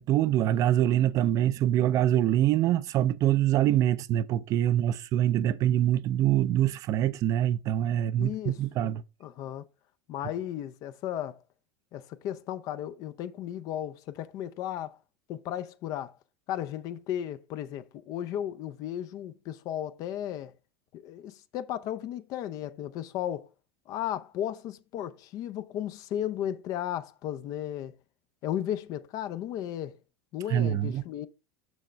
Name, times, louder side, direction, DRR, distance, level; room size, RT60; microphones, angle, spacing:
voice 1, 0.0-9.0 30.5-31.0, right 12 dB, 45° right, 0.5 m, -25 dB
voice 2, 8.2-8.6 9.2-9.6 10.1-11.4 11.9-15.0 15.3-16.1 16.5-20.5 20.9-23.5 23.9-27.9 28.4-30.0 30.3-31.3, left 11 dB, 50° left, 0.6 m, -35 dB
6.5 x 6.2 x 3.3 m
hypercardioid pair, 95°, 8 cm